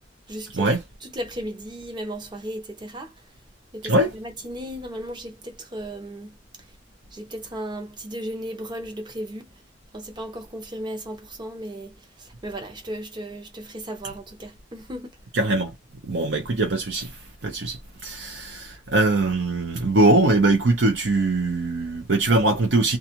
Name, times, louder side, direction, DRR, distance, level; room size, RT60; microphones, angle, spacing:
voice 1, 0.3-0.7 1.1-3.1 3.7-6.4 7.1-9.5 9.9-15.1, right 1 dB, 25° right, 0.7 m, -35 dB
voice 2, 3.8-4.1 15.3-15.7 16.1-23.0, right 2 dB, 70° right, 0.7 m, -22 dB
2.4 x 2.4 x 2.8 m
head